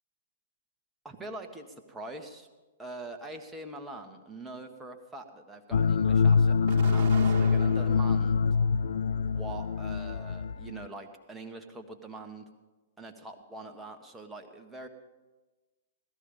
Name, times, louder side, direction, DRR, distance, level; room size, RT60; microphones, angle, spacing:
voice 1, 1.0-2.5 2.8-8.5 9.3-12.4 13.0-14.9, right 2 dB, 5° right, 3 dB, 1.5 m, -44 dB
sound 1, 5.7-10.8, left 5 dB, 65° left, 0.4 m, -25 dB
Explosion, 6.7-8.3 8.9-9.7, right 8 dB, 45° right, 1.8 m, -41 dB
17.5 x 13.5 x 5.3 m, 1.2 s
figure-of-eight pair, 115°, 0 cm